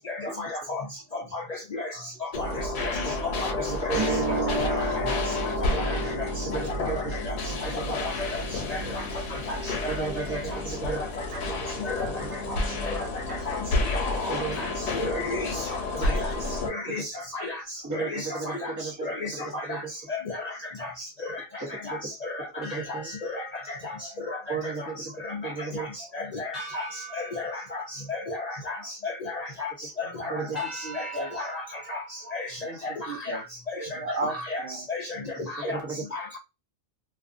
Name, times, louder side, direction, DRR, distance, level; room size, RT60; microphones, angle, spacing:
voice 1, 0.2-0.8 1.1-1.9 2.3-2.5 2.8-3.0 3.2-3.5 3.9-4.0 4.5-5.2 5.6-6.3 6.8-7.3 7.6-8.4 8.7-9.0 9.3-9.6 9.8-10.4 11.0-11.1 11.5-12.1 12.5-12.6 12.8-13.0 13.5-13.6 13.9-14.4 15.0-15.5 16.0-16.3 16.6-17.0 17.3-17.6 17.9-18.7 19.1-19.8 20.1-20.5 20.8-20.9 21.3-21.4 21.7-22.0 22.4-23.0 23.3-23.5 23.8-23.9 24.8-24.9 25.2-25.4 25.8-25.9 26.1-26.9 27.1-27.8 28.1-29.7 30.0-30.7 30.9-31.1 31.3-31.6 31.9-32.0 32.3-32.5 32.8-33.4 33.8-33.9 34.3-35.8 36.1-36.4, left 3 dB, 50° left, 0.5 m, -33 dB
voice 2, 1.9-2.3 2.6-2.8 3.4-3.5 4.3-4.7 5.4-6.1 8.8-8.9 11.3-11.5 13.3-13.4 15.2-15.3 16.8-16.9 23.6-24.5 25.5-26.1 28.5-28.9 29.5-29.6 30.0-30.5 30.8-31.5 32.2-33.4 33.9-34.4 34.6-34.9, right 2 dB, 80° right, 0.9 m, -39 dB
sound 1, 2.3-16.7, left 2 dB, 80° left, 0.9 m, -30 dB
voice 3, 3.5-4.7 6.4-7.1 7.6-8.0 9.8-11.0 12.2-12.4 14.3-15.2 15.5-15.6 15.9-16.1 16.9-17.0 17.8-19.9 21.6-22.1 22.6-23.1 24.5-25.1 25.4-25.9 30.3-30.6 35.7-36.0, right 4 dB, 20° right, 0.6 m, -35 dB
sound 2, 3.9-11.9, right 2 dB, 50° right, 1.2 m, -36 dB
sound 3, 22.6-25.1 25.4-25.5 26.5-29.0 29.5-30.0 30.5-33.4, right 3 dB, ahead, 1.0 m, -44 dB
2.5 x 2.4 x 2.4 m
omnidirectional pair, 1.1 m